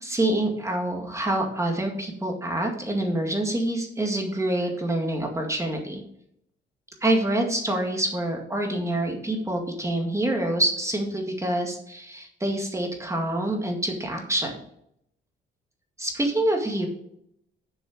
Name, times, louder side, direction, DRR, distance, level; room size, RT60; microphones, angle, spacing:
voice 1, 0.0-6.0 7.0-14.5 16.0-16.9, right 1 dB, 15° right, 2 dB, 2.0 m, -26 dB
7.0 x 6.5 x 5.0 m, 0.73 s
cardioid pair, 90°, 20 cm